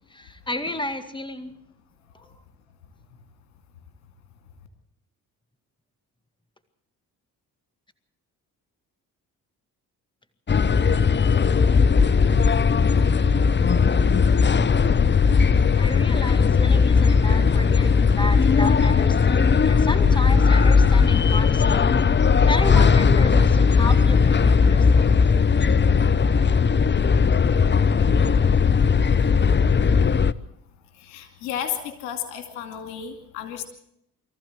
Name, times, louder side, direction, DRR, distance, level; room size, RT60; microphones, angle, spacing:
voice 1, 0.1-1.6 15.8-22.1 22.5-25.1, left 1 dB, 10° left, 12 dB, 2.0 m, -32 dB
sound 1, 10.5-30.3, left 5 dB, 25° left, 0.7 m, -18 dB
voice 2, 31.0-33.6, left 9 dB, 90° left, 7 dB, 2.5 m, -32 dB
23.5 x 14.5 x 7.9 m, 0.77 s
hypercardioid pair, 50°, 42 cm